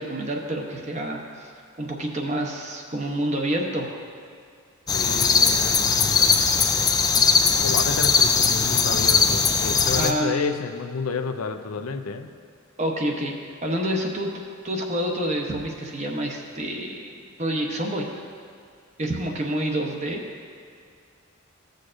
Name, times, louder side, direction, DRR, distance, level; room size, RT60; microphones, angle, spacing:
voice 1, 0.0-1.5 1.8-4.0 9.9-10.6 12.8-13.3 13.6-18.0 19.0-20.2, right 1 dB, 30° right, 1 dB, 0.9 m, -28 dB
voice 2, 4.9-6.3 7.6-12.3, left 5 dB, 85° left, 7 dB, 0.5 m, -30 dB
sound 1, 4.9-10.1, left 5 dB, 20° left, 0.3 m, -20 dB
15.5 x 6.4 x 2.6 m, 2.3 s
head